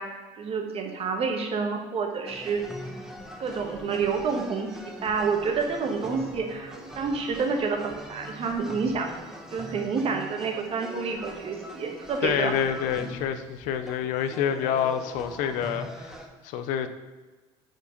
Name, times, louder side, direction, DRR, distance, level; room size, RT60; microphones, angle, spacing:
voice 1, 0.0-2.6 3.4-9.1 9.5-12.5, right 5 dB, 45° right, 3 dB, 1.2 m, -29 dB
sound 1, 2.3-16.3, equal, 5° right, 0.9 m, -42 dB
voice 2, 12.2-16.1 16.4-16.9, left 8 dB, 75° left, 10 dB, 0.5 m, -27 dB
4.7 x 4.5 x 5.2 m, 1.3 s
supercardioid pair, 85°, 13 cm